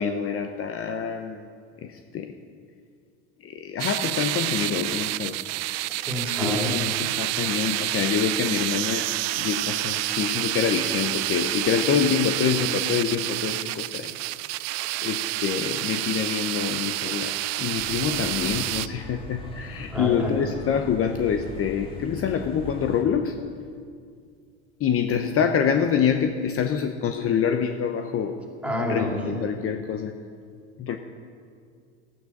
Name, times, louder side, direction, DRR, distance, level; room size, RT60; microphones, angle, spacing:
voice 1, 0.0-1.5 1.8-2.3 3.4-5.4 6.4-9.1 9.4-14.2 15.0-23.4 24.8-28.4 28.8-30.1 30.8-31.0, left 7 dB, 40° left, 6 dB, 0.8 m, -26 dB
sound 1, 3.8-18.9, right 18 dB, 50° right, 0.4 m, -28 dB
voice 2, 5.9-7.0 14.8-14.9 19.9-20.5 28.6-29.5, left 1 dB, 5° right, 0 dB, 2.8 m, -29 dB
sound 2, 17.8-23.0, left 3 dB, 15° left, 2.3 m, -40 dB
13.0 x 9.2 x 6.0 m, 2.2 s
hypercardioid pair, 80°, 35 cm